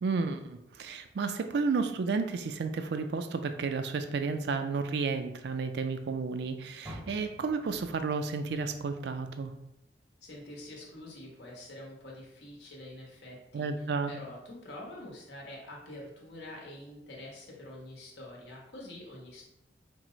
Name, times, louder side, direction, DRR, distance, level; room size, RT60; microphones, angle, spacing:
voice 1, 0.0-9.5 13.5-14.1, right 4 dB, 65° right, 8 dB, 0.4 m, -32 dB
Car, 6.8-10.1 10.5-11.8 12.3-12.4 13.0-13.1, equal, 10° right, 0.6 m, -51 dB
voice 2, 10.2-19.5, left 1 dB, 75° left, -2 dB, 1.1 m, -46 dB
4.5 x 2.1 x 3.8 m, 0.82 s
head